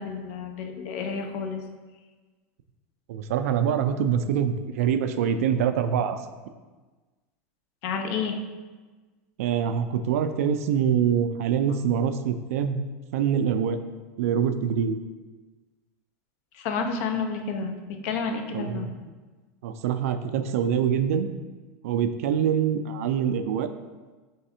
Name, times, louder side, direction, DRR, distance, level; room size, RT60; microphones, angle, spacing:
voice 1, 0.0-1.6 7.8-8.4 16.5-18.9, left 5 dB, 65° left, 4 dB, 0.6 m, -30 dB
voice 2, 3.1-6.2 9.4-12.8 13.1-13.8 14.2-15.0 18.5-18.9 19.6-21.3 21.8-23.7, right 8 dB, 80° right, 9 dB, 0.4 m, -25 dB
3.4 x 3.2 x 4.2 m, 1.3 s
supercardioid pair, 125°, 8 cm